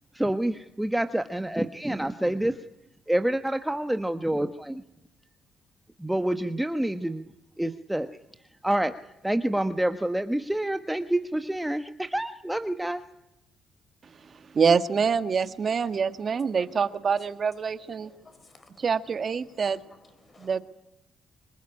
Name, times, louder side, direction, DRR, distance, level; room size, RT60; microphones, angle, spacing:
voice 1, 0.1-2.6 3.1-4.8 6.0-7.2 7.6-8.1 8.6-8.9 9.2-13.0, right 1 dB, 5° right, 1.2 m, -27 dB
voice 2, 14.0-18.1 18.8-19.8 20.4-20.6, right 6 dB, 45° right, 1.6 m, -26 dB
voice 3, 16.2-17.0 18.0-18.9 19.5-20.6, left 3 dB, 30° left, 5.3 m, -55 dB
25.5 x 22.0 x 9.9 m
cardioid pair, 90°, 0 cm